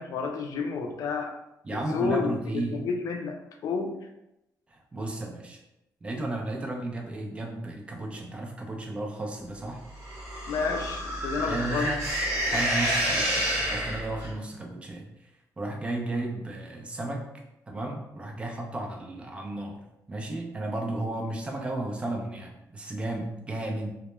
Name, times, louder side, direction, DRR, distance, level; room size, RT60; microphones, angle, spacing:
voice 1, 0.0-1.3 1.9-3.4 3.6-4.0 10.5-11.9, left 5 dB, 60° left, 4 dB, 0.3 m, -30 dB
voice 2, 1.6-2.8 4.7-5.6 6.0-9.8 11.4-12.0 12.4-15.1 15.6-17.3 17.7-19.8 20.1-23.9, right 2 dB, 20° right, 1 dB, 0.4 m, -33 dB
sound 1, 10.0-14.3, equal, 45° right, 0.9 m, -29 dB
2.1 x 2.0 x 3.0 m, 0.87 s
cardioid pair, 150°, 6 cm